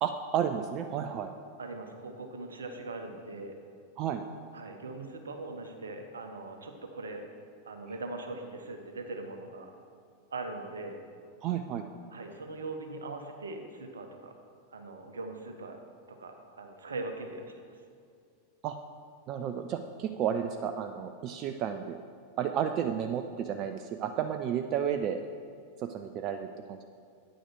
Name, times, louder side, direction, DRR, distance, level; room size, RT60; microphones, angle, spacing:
voice 1, 0.0-1.3 4.0-4.2 11.4-11.9 18.6-18.8 19.3-22.0 22.4-25.2 25.8-26.8, right 8 dB, 35° right, 7 dB, 0.4 m, -32 dB
voice 2, 1.6-3.6 4.5-7.2 7.6-9.7 10.3-11.0 12.1-14.3 14.7-15.8 16.1-17.8, right 2 dB, 70° right, 5 dB, 0.9 m, -41 dB
9.2 x 6.3 x 4.6 m, 2.3 s
figure-of-eight pair, 90°, 0 cm